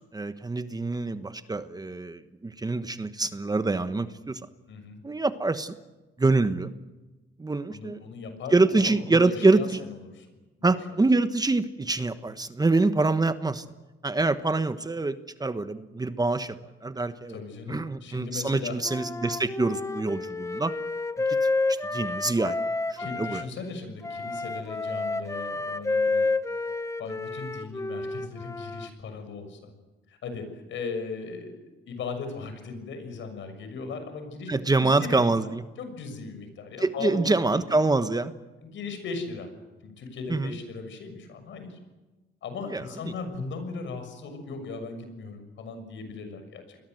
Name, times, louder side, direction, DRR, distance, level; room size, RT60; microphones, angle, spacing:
voice 1, 0.0-4.4 5.0-5.8 6.2-6.7 7.4-8.0 8.5-9.8 10.6-13.6 14.0-16.6 16.8-17.4 17.7-20.7 21.3-22.6 22.9-23.4 34.5-35.6 36.8-38.3 40.3-40.5 42.7-43.1, right 3 dB, 20° right, 11 dB, 1.2 m, -25 dB
voice 2, 7.7-10.3 10.6-10.7 17.3-18.7 23.0-26.3 27.0-29.6 30.1-34.5 34.8-35.3 35.8-37.6 38.6-39.5 39.8-41.8 42.4-46.8, left 4 dB, 70° left, 8 dB, 6.6 m, -38 dB
Wind instrument woodwind instrument, 18.8-23.5 24.0-28.9, left 3 dB, 15° left, 1.3 m, -30 dB
29.0 x 21.5 x 7.9 m, 1.2 s
cardioid pair, 90°, 20 cm